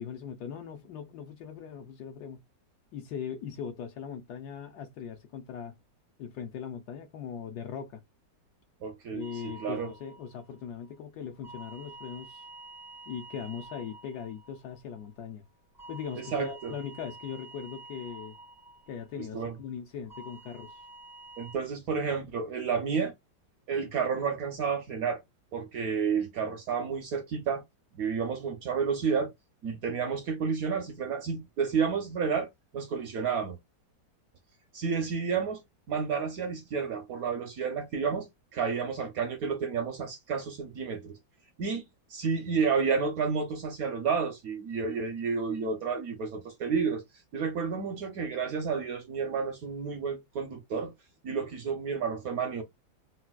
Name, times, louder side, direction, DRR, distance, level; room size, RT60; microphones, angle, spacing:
voice 1, 0.0-2.4 2.9-5.7 6.2-8.0 9.1-12.5 13.1-15.4 15.9-18.4 18.9-20.9, left 7 dB, 70° left, 0.9 m, -40 dB
voice 2, 8.8-9.9 16.2-16.7 19.3-19.5 21.4-23.1 23.7-25.2 25.5-27.6 27.9-29.3 29.6-33.6 34.7-35.6 35.9-41.2 41.6-41.8 42.1-47.0 47.3-50.9 51.2-52.6, right 6 dB, 70° right, 0.9 m, -31 dB
sound 1, 9.2-11.0 11.3-15.3 15.7-19.7 20.1-21.6, right 2 dB, 30° left, 0.3 m, -49 dB
4.0 x 2.2 x 2.2 m
omnidirectional pair, 2.0 m